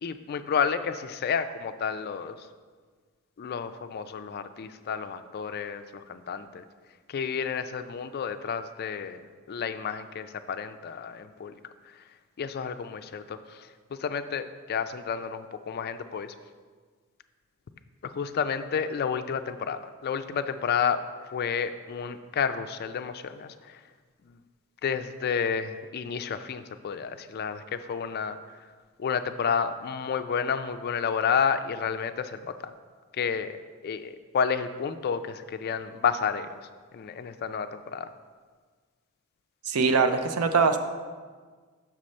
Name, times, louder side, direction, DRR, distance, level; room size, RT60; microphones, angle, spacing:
voice 1, 0.0-2.4 3.4-6.6 7.1-9.2 9.5-11.5 12.4-16.3 18.0-21.0 21.3-23.8 24.3-24.4 24.8-28.4 29.0-32.7 33.1-33.6 33.8-36.6 36.9-38.1, left 6 dB, 45° left, 10 dB, 0.3 m, -30 dB
voice 2, 39.7-40.8, right 4 dB, 80° right, 8 dB, 0.5 m, -22 dB
6.0 x 4.3 x 6.4 m, 1.5 s
head